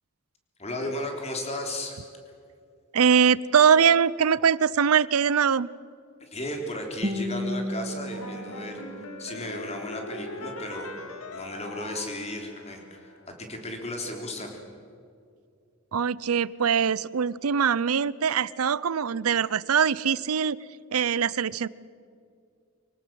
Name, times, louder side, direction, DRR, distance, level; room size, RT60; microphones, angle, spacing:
voice 1, 0.6-2.0 6.2-8.8 9.2-10.9 11.3-14.6, left 1 dB, 30° left, 3 dB, 3.6 m, -35 dB
voice 2, 2.9-5.7 15.9-20.6 20.9-21.7, right 7 dB, 90° right, 20 dB, 0.6 m, -22 dB
Guitar, 7.0-10.0, left 1 dB, 30° right, 1.1 m, -34 dB
sound 1, 8.1-13.2, left 2 dB, 80° left, 2.2 m, -41 dB
25.0 x 18.0 x 7.7 m, 2.4 s
head